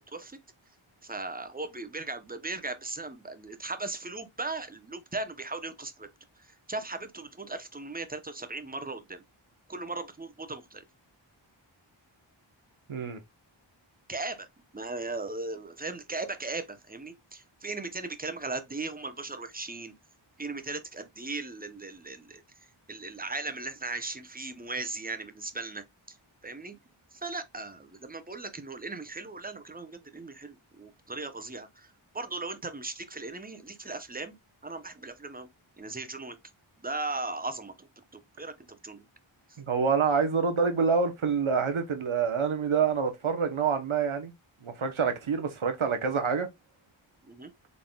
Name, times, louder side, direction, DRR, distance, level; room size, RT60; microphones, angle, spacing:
voice 1, 0.1-0.4 1.0-6.1 6.4-9.2 9.7-10.8 14.1-14.5 14.7-19.9 20.4-22.4 22.9-26.2 26.4-26.8 27.1-34.3 34.6-35.5 35.8-36.4 36.8-38.5 38.8-39.0 47.2-47.5, right 3 dB, 20° right, 0.7 m, -38 dB
voice 2, 39.7-44.3 44.6-46.5, right 5 dB, 80° right, 1.0 m, -27 dB
4.0 x 3.6 x 2.2 m
wide cardioid pair, 45°, 48 cm